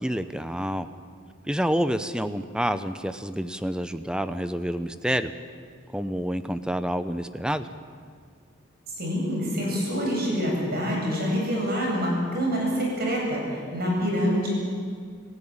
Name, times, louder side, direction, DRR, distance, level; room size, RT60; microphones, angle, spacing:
voice 1, 0.0-0.9 1.5-5.3 5.9-7.7, equal, 5° right, 11 dB, 0.8 m, -28 dB
voice 2, 9.0-14.6, equal, 50° right, -2 dB, 8.0 m, -26 dB
28.0 x 15.0 x 8.9 m, 2.1 s
head